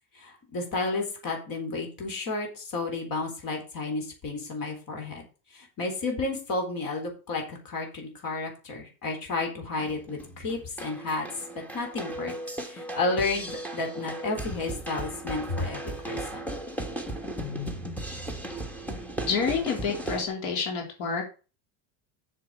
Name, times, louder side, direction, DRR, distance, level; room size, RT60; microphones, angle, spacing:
voice 1, 0.1-5.2 5.5-11.3 11.7-12.3 12.7-16.5, left 3 dB, 45° left, 3 dB, 4.0 m, -32 dB
sound 1, 9.7-20.3, right 1 dB, 5° left, 1.5 m, -36 dB
voice 2, 19.2-21.2, left 5 dB, 90° left, 2 dB, 3.8 m, -28 dB
7.7 x 6.8 x 6.6 m, 0.33 s
cardioid pair, 140°, 47 cm